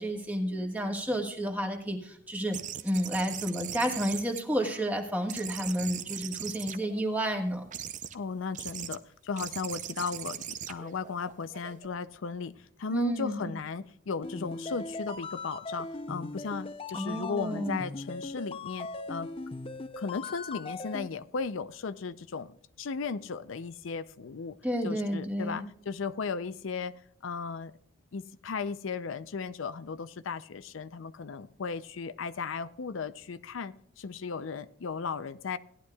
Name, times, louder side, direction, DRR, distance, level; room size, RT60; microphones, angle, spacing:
voice 1, 0.0-2.6 2.8-7.7 12.9-13.5 16.9-17.8 24.6-25.6, equal, 10° right, 1 dB, 1.5 m, -31 dB
sound 1, 2.5-4.9 5.3-7.2 7.7-8.2 8.5-9.0 9.4-11.9, right 9 dB, 40° right, 0.6 m, -40 dB
voice 2, 8.1-12.5 12.8-19.3 20.0-22.5 22.8-24.6 24.8-26.9 27.2-27.7 28.1-35.6, left 5 dB, 80° left, 13 dB, 0.5 m, -36 dB
sound 2, 14.2-21.1, left 3 dB, 25° left, 0.5 m, -39 dB
17.5 x 11.0 x 2.3 m, 0.66 s
head